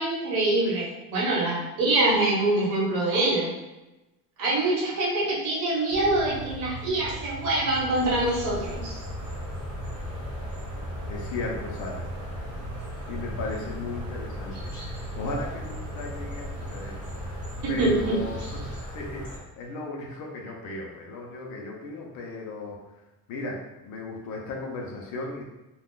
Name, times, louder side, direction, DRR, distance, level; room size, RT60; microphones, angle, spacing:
voice 1, 0.0-3.5 4.4-9.0 17.6-18.2, right 2 dB, 65° right, -5 dB, 1.2 m, -25 dB
sound 1, 5.9-18.8, equal, 45° right, 0.6 m, -39 dB
sound 2, 7.9-19.4, equal, 15° right, 1.1 m, -38 dB
voice 2, 11.1-12.0 13.1-17.0 17.7-18.6 18.9-22.8 23.3-25.4, left 2 dB, 55° left, -1 dB, 0.7 m, -36 dB
2.5 x 2.3 x 3.7 m, 1.0 s
cardioid pair, 175°, 36 cm